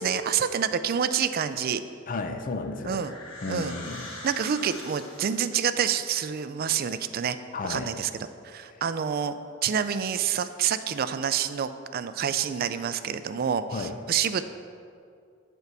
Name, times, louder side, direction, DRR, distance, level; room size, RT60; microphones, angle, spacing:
voice 1, 0.0-1.8 2.8-3.1 3.5-3.8 4.2-7.4 7.6-9.4 9.6-14.4, right 8 dB, 45° right, 12 dB, 0.4 m, -28 dB
voice 2, 2.1-3.0 3.4-4.1 7.5-7.9 8.7-8.8 13.7-14.0, left 3 dB, 40° left, 7 dB, 0.5 m, -33 dB
sound 1, 2.4-5.6, left 2 dB, 70° left, 1.4 m, -43 dB
8.2 x 4.6 x 6.7 m, 2.4 s
head